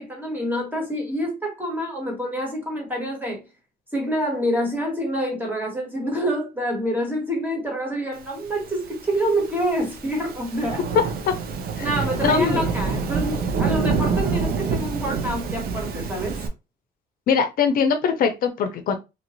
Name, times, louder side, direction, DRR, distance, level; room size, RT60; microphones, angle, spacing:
voice 1, 0.0-3.4 3.9-10.8 11.8-16.4, equal, 10° right, 1.4 m, -27 dB
Thunderstorm / Rain, 8.8-16.5, right 5 dB, 65° right, 0.7 m, -27 dB
voice 2, 12.2-12.6 17.3-18.9, left 6 dB, 60° left, 0.6 m, -21 dB
2.9 x 2.5 x 3.0 m
cardioid pair, 110°, 17 cm